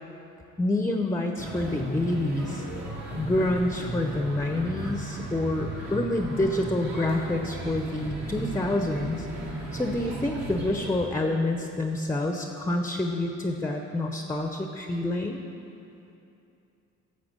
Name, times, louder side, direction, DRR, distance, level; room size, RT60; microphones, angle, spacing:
voice 1, 0.6-2.7 3.1-9.3 9.7-15.4, left 1 dB, 10° left, 4 dB, 0.6 m, -27 dB
sound 1, 1.4-11.1, right 1 dB, 60° right, 2.3 m, -35 dB
9.8 x 6.8 x 6.6 m, 2.8 s
cardioid pair, 90°, 30 cm